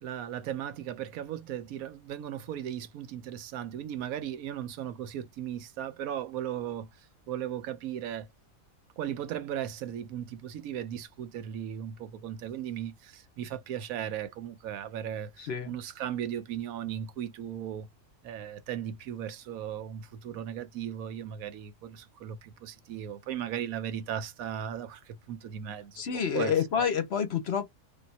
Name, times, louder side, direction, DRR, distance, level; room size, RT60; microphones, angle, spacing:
voice 1, 0.0-8.3 9.0-17.9 18.2-26.0 26.3-26.5, right 10 dB, 80° right, 1.1 m, -37 dB
voice 2, 15.4-15.7 26.0-27.7, left 7 dB, 55° left, 0.8 m, -28 dB
3.5 x 2.7 x 4.1 m
omnidirectional pair, 1.5 m